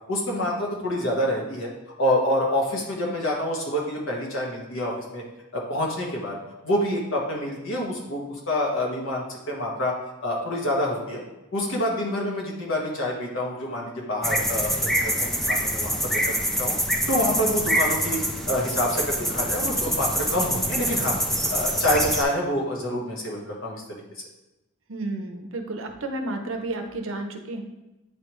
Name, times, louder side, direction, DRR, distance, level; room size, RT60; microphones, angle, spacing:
voice 1, 0.1-1.7 2.0-5.2 5.5-6.3 6.6-9.9 10.2-11.2 11.5-16.7 17.1-21.2 21.5-23.8, left 1 dB, 75° left, -2 dB, 1.5 m, -27 dB
sound 1, 14.2-22.2, equal, ahead, 0.4 m, -25 dB
voice 2, 24.9-27.6, right 2 dB, 75° right, 5 dB, 0.7 m, -31 dB
9.1 x 3.4 x 3.1 m, 1.0 s
head